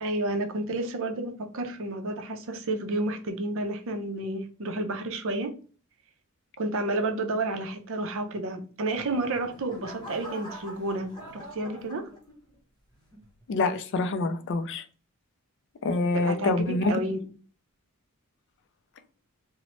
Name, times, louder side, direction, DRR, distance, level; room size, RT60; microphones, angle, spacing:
voice 1, 0.0-5.5 6.6-12.1 16.1-17.2, right 2 dB, 65° right, 0.5 m, -31 dB
sound 1, 9.0-12.6 13.1-13.5, right 1 dB, 20° left, 0.7 m, -44 dB
voice 2, 13.5-14.8 15.8-17.2, left 3 dB, 55° left, 0.4 m, -26 dB
2.9 x 2.0 x 2.9 m
head